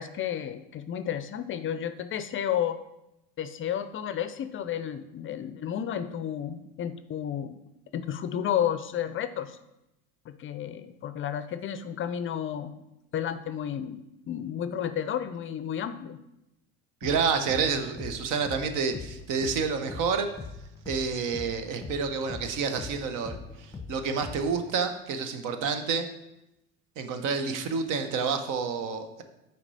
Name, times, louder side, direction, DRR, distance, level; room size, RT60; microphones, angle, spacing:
voice 1, 0.0-2.8 3.4-7.6 7.9-9.6 10.3-12.8 13.1-16.2, left 9 dB, 35° left, 12 dB, 0.4 m, -32 dB
sound 1, 17.0-24.7, left 4 dB, 10° left, 1.0 m, -42 dB
voice 2, 17.0-20.3 20.9-26.1 27.0-29.2, right 5 dB, 60° right, 8 dB, 0.9 m, -29 dB
5.9 x 4.5 x 4.1 m, 0.89 s
supercardioid pair, 85°, 35 cm